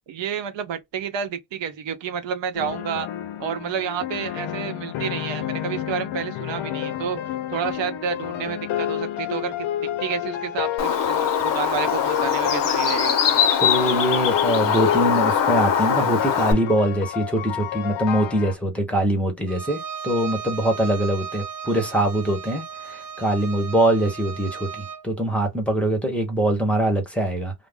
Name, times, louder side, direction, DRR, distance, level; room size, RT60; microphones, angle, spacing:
voice 1, 0.1-3.1 3.4-7.2 7.5-9.7 10.0-13.2, right 7 dB, 70° right, 0.9 m, -30 dB
sound 1, 2.5-18.6, left 11 dB, 85° left, 0.6 m, -30 dB
Bird, 10.8-16.5, left 7 dB, 45° left, 0.5 m, -22 dB
voice 2, 13.6-27.5, right 1 dB, 5° left, 0.7 m, -23 dB
Bowed string instrument, 19.5-25.1, right 7 dB, 45° right, 0.6 m, -36 dB
2.5 x 2.0 x 3.3 m
cardioid pair, 170°, 46 cm